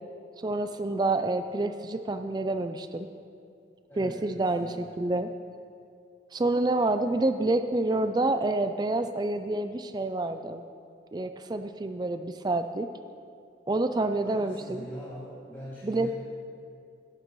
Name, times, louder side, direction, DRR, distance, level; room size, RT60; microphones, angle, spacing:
voice 1, 0.4-3.1 4.0-5.3 6.3-10.6 11.1-12.9 13.7-14.9 15.8-16.1, right 2 dB, 20° right, 9 dB, 0.3 m, -28 dB
voice 2, 3.9-5.0 14.2-16.1, equal, 10° left, -11 dB, 2.3 m, -43 dB
17.5 x 12.0 x 3.1 m, 2.5 s
head